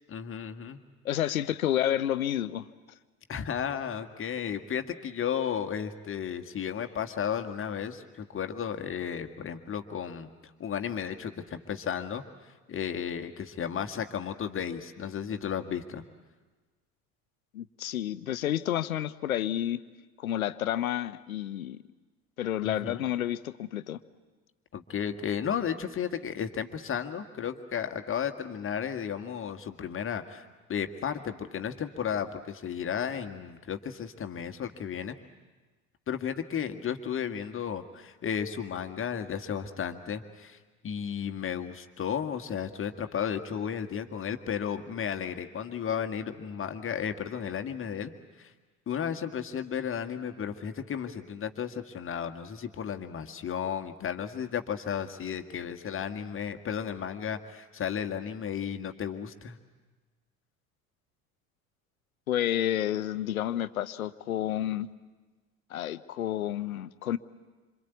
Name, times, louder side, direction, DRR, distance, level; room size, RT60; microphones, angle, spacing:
voice 1, 0.1-0.8 3.3-10.3 10.6-12.2 12.7-16.0 22.6-23.0 24.7-35.2 36.1-40.6 40.8-48.1 48.4-48.5 48.9-59.6, left 8 dB, 30° left, 7 dB, 1.7 m, -34 dB
voice 2, 1.0-2.6 17.5-19.8 20.2-21.8 22.4-24.0 62.3-64.9 65.7-67.2, left 11 dB, 70° left, 14 dB, 1.0 m, -30 dB
27.0 x 26.5 x 8.3 m, 1.3 s
figure-of-eight pair, 65°, 43 cm